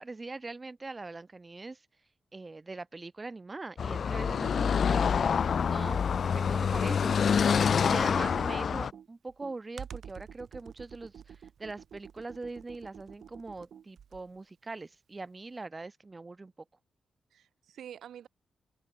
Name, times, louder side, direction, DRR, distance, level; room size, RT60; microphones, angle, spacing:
voice 1, 0.0-1.9 2.3-7.3 7.6-16.5, right 3 dB, 20° right, 1.2 m, -42 dB
Car passing by / Traffic noise roadway noise, 3.8-8.9, left 7 dB, 50° left, 0.4 m, -26 dB
Computer keyboard, 7.5-14.4, right 8 dB, 65° right, 6.1 m, -49 dB
voice 2, 7.7-8.8 17.3-18.3, right 9 dB, 85° right, 1.7 m, -47 dB
wide cardioid pair, 135°, 0 cm